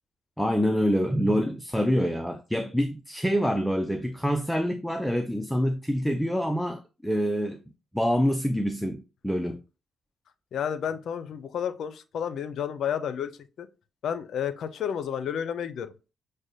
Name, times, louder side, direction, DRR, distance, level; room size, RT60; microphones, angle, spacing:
voice 1, 0.4-7.6 7.9-9.6, equal, 5° left, 0.4 m, -26 dB
voice 2, 10.5-13.3 13.6-13.7 14.0-15.9, left 8 dB, 65° left, 0.5 m, -31 dB
6.1 x 2.2 x 2.7 m
cardioid pair, 90°, 0 cm